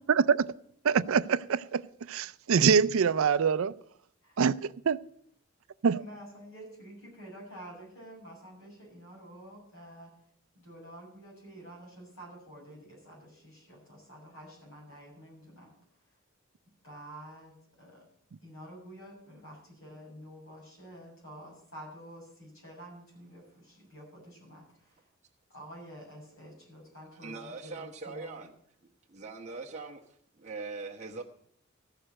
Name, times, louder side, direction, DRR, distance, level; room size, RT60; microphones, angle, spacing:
voice 1, 0.1-0.4 0.8-1.8 2.1-3.7 4.4-5.0 5.8-6.0, right 6 dB, 70° right, 17 dB, 0.4 m, -25 dB
voice 2, 5.9-10.1 10.5-15.7 16.8-18.1 18.4-25.0 25.5-28.5, equal, 75° left, -4 dB, 7.2 m, -49 dB
voice 3, 27.1-28.5 29.1-30.0 30.3-31.2, right 3 dB, 30° right, -2 dB, 1.1 m, -41 dB
14.5 x 6.6 x 7.6 m, 0.66 s
head